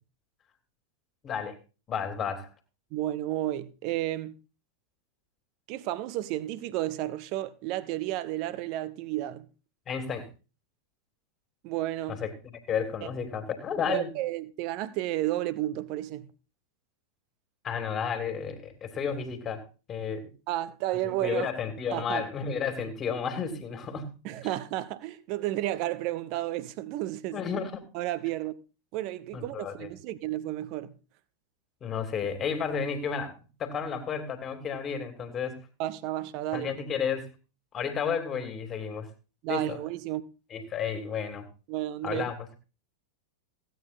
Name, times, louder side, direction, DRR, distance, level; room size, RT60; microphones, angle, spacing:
voice 1, 1.2-1.6 1.9-2.5 9.9-10.3 12.1-14.1 17.6-19.6 19.9-20.3 21.2-24.2 24.4-24.5 27.3-27.8 29.3-29.9 31.8-35.6 36.5-37.3 37.7-39.1 39.5-39.8 40.5-41.5 42.0-42.3, left 6 dB, 25° left, 2.6 m, -32 dB
voice 2, 2.9-4.3 5.7-9.5 11.6-12.2 13.0-13.1 13.9-16.3 20.5-21.5 21.9-22.3 24.2-27.4 27.9-28.5 28.9-30.9 35.8-36.7 39.4-40.2 41.7-42.3, right 15 dB, 45° right, 1.0 m, -32 dB
16.0 x 9.3 x 4.2 m
figure-of-eight pair, 90°, 0 cm